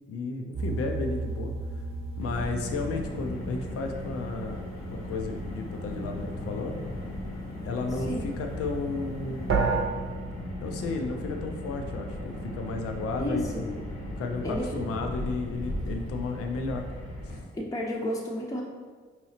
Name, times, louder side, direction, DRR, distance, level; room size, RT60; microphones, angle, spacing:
voice 1, 0.1-1.8 2.2-6.7 7.6-9.7 10.6-13.8 14.2-16.8, left 3 dB, 50° left, 4 dB, 0.6 m, -33 dB
sound 1, 0.5-4.7 9.5-9.8, right 4 dB, 45° right, 0.8 m, -31 dB
Car, 2.2-17.4, left 1 dB, 70° left, 1.1 m, -36 dB
voice 2, 13.2-13.6 14.4-14.7 17.6-18.6, left 1 dB, 10° left, -3 dB, 0.8 m, -31 dB
4.6 x 2.9 x 2.8 m, 1.5 s
hypercardioid pair, 45°, 30 cm